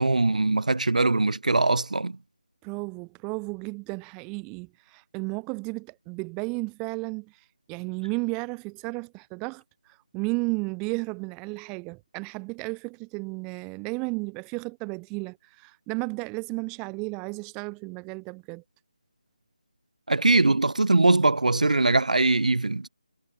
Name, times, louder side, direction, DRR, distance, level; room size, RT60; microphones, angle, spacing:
voice 1, 0.0-2.2 20.1-22.9, right 2 dB, 75° right, 1.2 m, -21 dB
voice 2, 2.6-18.6, right 31 dB, 10° right, 0.4 m, -33 dB
figure-of-eight pair, 160°, 4 cm